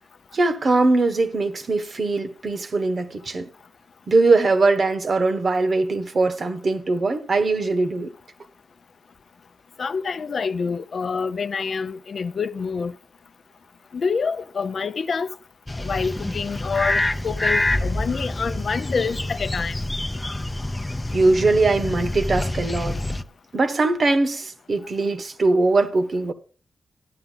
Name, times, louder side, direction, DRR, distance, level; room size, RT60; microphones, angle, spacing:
voice 1, 0.3-3.5 4.1-8.1 21.1-23.0 23.5-26.3, right 3 dB, 45° right, 1.3 m, -21 dB
voice 2, 9.8-12.9 13.9-15.3 15.8-19.8, left 5 dB, 55° left, 0.6 m, -27 dB
sound 1, 15.7-23.2, left 1 dB, 15° left, 0.6 m, -26 dB
13.0 x 10.0 x 3.9 m
wide cardioid pair, 120°, 0 cm